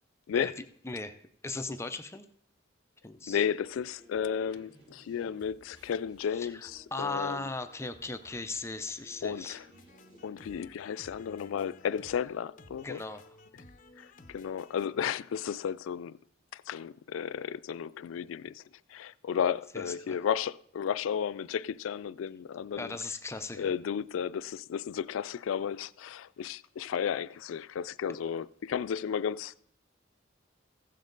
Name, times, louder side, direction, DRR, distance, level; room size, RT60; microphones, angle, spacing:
voice 1, 0.8-1.2 1.4-2.3 3.0-3.4 6.3-9.6 12.8-13.2 19.7-20.2 22.8-23.7, left 3 dB, 15° left, 0.4 m, -37 dB
voice 2, 3.3-7.5 9.2-9.7 10.2-13.0 14.0-16.2 16.5-18.6 18.9-23.0 23.5-29.6, left 8 dB, 80° left, 0.3 m, -33 dB
sound 1, 3.6-10.7, right 1 dB, 80° right, 5.2 m, -58 dB
sound 2, 9.7-15.1, left 2 dB, 40° left, 0.8 m, -55 dB
15.5 x 7.4 x 3.8 m
head